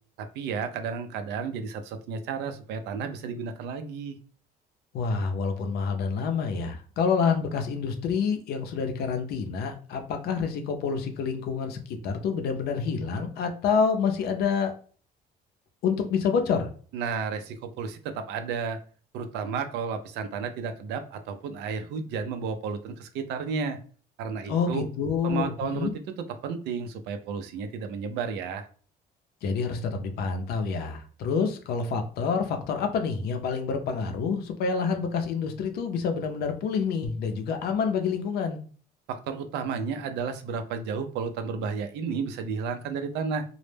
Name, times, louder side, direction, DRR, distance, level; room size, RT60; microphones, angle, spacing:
voice 1, 0.2-4.2 16.9-18.8 19.1-23.8 24.2-24.9 25.2-28.7 39.1-43.4, right 5 dB, 85° right, 8 dB, 0.4 m, -32 dB
voice 2, 4.9-14.7 15.8-16.7 24.5-25.9 29.4-38.6, left 5 dB, 70° left, 5 dB, 0.5 m, -27 dB
2.1 x 2.0 x 3.1 m, 0.42 s
cardioid pair, 110°, 17 cm